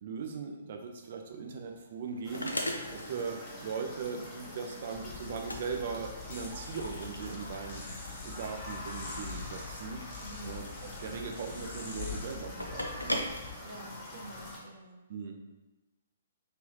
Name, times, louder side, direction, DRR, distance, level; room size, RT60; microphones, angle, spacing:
voice 1, 0.0-7.9 8.2-10.0 10.4-13.4 15.1-15.4, right 5 dB, 45° right, 4 dB, 0.5 m, -39 dB
sound 1, 1.1-14.4, equal, 80° left, 0.5 m, -41 dB
sound 2, 2.2-14.6, left 1 dB, 20° left, 0.9 m, -46 dB
sound 3, 4.9-13.5, left 5 dB, 45° left, 1.1 m, -44 dB
voice 2, 10.2-10.7 13.6-15.0, right 1 dB, 60° right, -2 dB, 0.9 m, -48 dB
3.5 x 3.3 x 3.0 m, 1.1 s
figure-of-eight pair, 125°, 0 cm